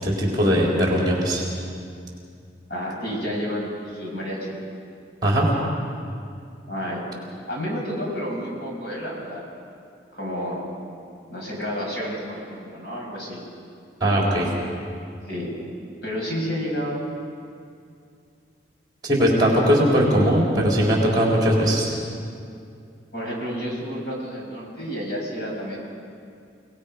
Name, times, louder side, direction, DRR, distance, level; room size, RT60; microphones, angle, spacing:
voice 1, 0.0-1.4 5.2-5.5 14.0-14.5 19.0-21.9, equal, 20° right, -3 dB, 4.1 m, -19 dB
voice 2, 2.7-4.5 6.6-7.0 7.5-9.4 10.1-10.7 11.3-13.4 15.3-15.5 16.0-17.0 23.1-25.8, equal, 60° left, -2 dB, 6.1 m, -30 dB
29.0 x 19.5 x 5.5 m, 2.4 s
head